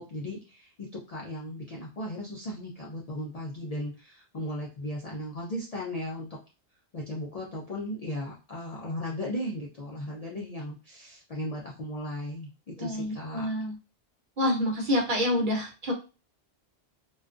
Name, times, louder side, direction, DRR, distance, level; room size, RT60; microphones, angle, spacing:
voice 1, 0.0-6.4 6.9-13.5, left 1 dB, 55° left, -3 dB, 0.4 m, -36 dB
voice 2, 12.8-13.7 14.4-15.9, left 1 dB, 55° right, -1 dB, 0.9 m, -27 dB
2.3 x 2.2 x 2.4 m, 0.32 s
omnidirectional pair, 1.1 m